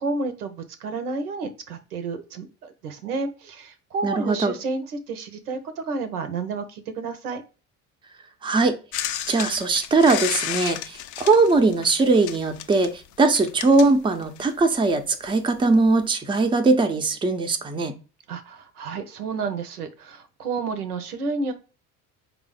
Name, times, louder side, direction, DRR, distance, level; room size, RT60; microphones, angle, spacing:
voice 1, 0.0-7.4 18.3-21.5, right 4 dB, 80° right, 9 dB, 0.6 m, -31 dB
voice 2, 4.0-4.5 8.4-8.8 9.3-17.9, right 3 dB, 10° right, 6 dB, 0.5 m, -20 dB
sound 1, 8.9-14.6 15.6-15.7, left 11 dB, 45° left, 0.4 m, -32 dB
4.9 x 2.0 x 4.7 m, 0.33 s
figure-of-eight pair, 55°, 45 cm